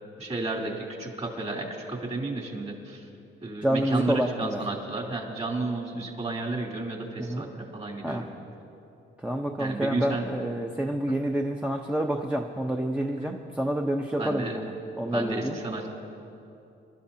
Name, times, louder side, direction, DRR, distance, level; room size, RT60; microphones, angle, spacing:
voice 1, 0.2-3.1 3.4-8.3 9.6-10.3 14.2-14.6 15.1-15.9, right 2 dB, 35° right, -1 dB, 3.2 m, -32 dB
voice 2, 3.6-4.6 7.2-7.4 8.0-8.3 9.2-14.7 15.0-15.6, right 1 dB, 5° right, 1 dB, 0.8 m, -28 dB
27.5 x 12.5 x 2.8 m, 2.7 s
cardioid pair, 90°, 20 cm